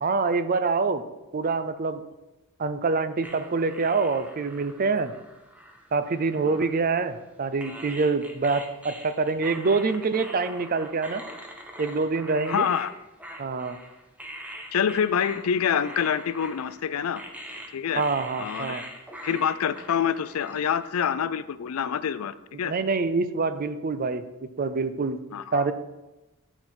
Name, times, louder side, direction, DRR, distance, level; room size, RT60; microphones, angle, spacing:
voice 1, 0.0-1.0 1.3-2.0 2.6-5.1 5.9-11.2 11.8-12.7 13.4-13.8 18.0-18.8 22.6-24.2 24.6-25.2 25.5-25.7, right 4 dB, 45° right, 11 dB, 0.5 m, -25 dB
sound 1, 3.2-7.2 7.6-20.9, equal, 5° right, 0.9 m, -43 dB
voice 2, 12.5-12.9 14.7-17.2 17.7-18.0 18.4-18.9 19.2-22.7 25.3-25.7, left 8 dB, 90° left, 15 dB, 0.4 m, -26 dB
11.5 x 4.6 x 4.4 m, 1.0 s
head